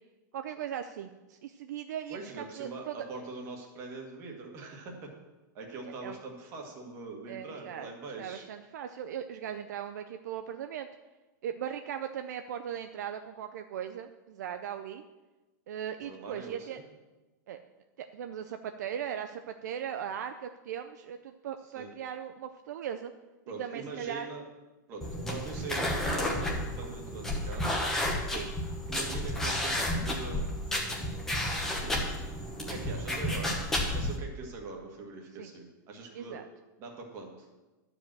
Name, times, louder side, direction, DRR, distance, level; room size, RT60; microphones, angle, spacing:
voice 1, 0.3-2.2 2.6-3.0 6.0-6.1 7.3-10.9 11.4-15.0 15.7-16.8 17.5-17.6 18.0-23.1 23.6-24.3 28.3-28.5 35.4-35.5 36.1-36.4, right 9 dB, 60° right, 8 dB, 0.5 m, -38 dB
voice 2, 2.1-5.1 5.5-8.5 16.0-16.8 21.7-21.9 23.5-24.4 24.9-27.9 28.9-30.4 31.8-32.2 32.6-33.6 33.9-36.4 36.8-37.5, right 3 dB, 25° right, 1 dB, 1.6 m, -42 dB
sound 1, 25.0-34.2, left 1 dB, 5° left, 1.1 m, -32 dB
11.5 x 5.0 x 7.5 m, 1.1 s
supercardioid pair, 175°, 10 cm